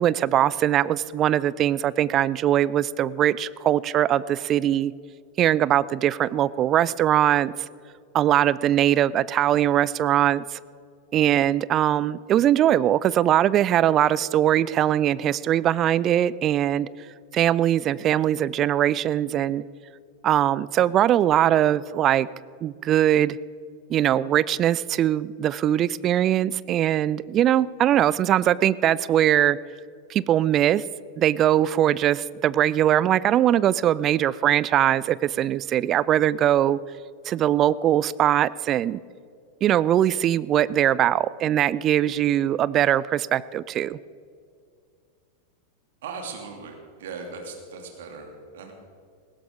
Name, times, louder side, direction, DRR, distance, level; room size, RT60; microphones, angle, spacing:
voice 1, 0.0-4.9 5.4-7.5 8.1-10.6 11.1-16.9 17.3-19.6 20.2-22.3 22.6-23.4 23.9-29.6 30.1-30.8 31.2-36.8 37.3-39.0 39.6-44.0, right 11 dB, 30° right, 20 dB, 0.4 m, -21 dB
voice 2, 46.0-48.7, right 4 dB, 60° right, 3 dB, 2.6 m, -38 dB
19.0 x 16.5 x 3.8 m, 2.3 s
figure-of-eight pair, 90°, 0 cm